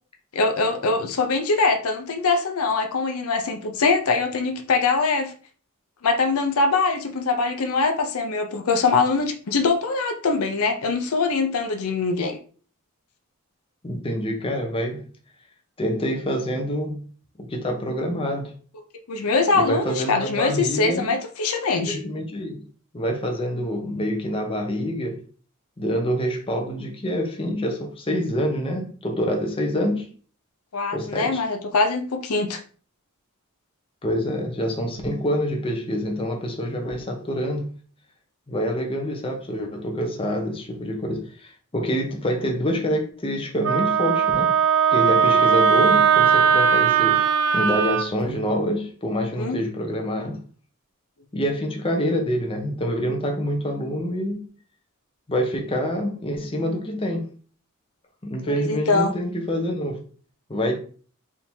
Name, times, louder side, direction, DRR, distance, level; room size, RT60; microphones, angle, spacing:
voice 1, 0.3-5.3 6.0-12.4 19.1-22.0 30.7-32.6 49.3-49.6 58.5-59.1, left 4 dB, 80° left, 0.6 m, -23 dB
voice 2, 13.8-15.0 15.8-17.1 17.4-18.5 19.5-21.1 21.8-22.6 22.9-25.2 25.8-30.1 30.9-31.4 34.0-37.7 38.5-44.5 44.9-47.2 47.5-50.4 51.3-54.4 55.3-57.3 58.2-60.0 60.5-60.8, equal, 25° left, 0.8 m, -26 dB
Wind instrument woodwind instrument, 43.6-48.0, right 7 dB, 65° right, 0.5 m, -18 dB
3.6 x 2.8 x 4.4 m
head